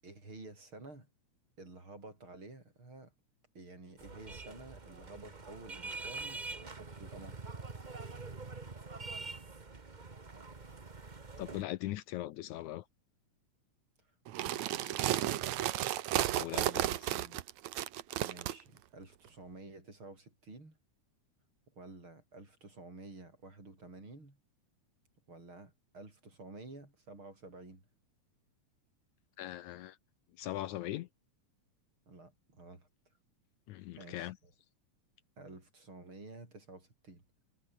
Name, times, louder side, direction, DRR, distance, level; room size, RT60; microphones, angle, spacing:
voice 1, 0.0-1.1 1.6-3.1 3.5-7.4 14.4-15.6 16.5-17.4 18.2-20.8 21.7-24.4 25.3-27.8 32.1-32.9 34.0-34.5 35.4-37.2, right 2 dB, 40° right, 8.2 m, -51 dB
sound 1, 4.0-11.6, right 4 dB, 55° right, 0.5 m, -45 dB
voice 2, 11.4-12.9 15.0-15.1 16.3-16.7 17.0-17.1 29.4-30.0 30.4-31.1 33.7-34.4, left 15 dB, 75° left, 2.0 m, -40 dB
sound 2, 14.3-18.5, right 14 dB, 70° right, 2.2 m, -33 dB
omnidirectional pair, 3.6 m